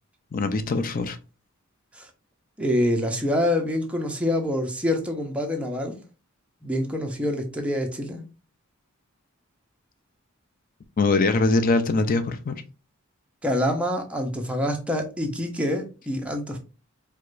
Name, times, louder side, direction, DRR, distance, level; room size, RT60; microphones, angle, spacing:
voice 1, 0.3-1.2 11.0-12.6, left 3 dB, 40° left, 0.4 m, -22 dB
voice 2, 2.6-6.0 6.6-8.2 13.4-16.6, left 1 dB, 5° right, 0.6 m, -26 dB
4.7 x 2.2 x 2.5 m
head